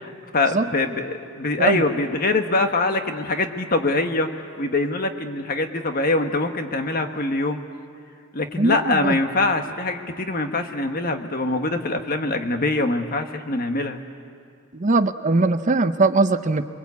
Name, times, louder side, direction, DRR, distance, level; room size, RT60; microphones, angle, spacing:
voice 1, 0.0-4.3 4.6-7.6 8.3-14.0, left 2 dB, 45° left, 6 dB, 1.5 m, -23 dB
voice 2, 8.5-9.2 14.7-16.7, right 3 dB, 35° right, 10 dB, 0.7 m, -20 dB
28.0 x 21.5 x 8.4 m, 2.3 s
head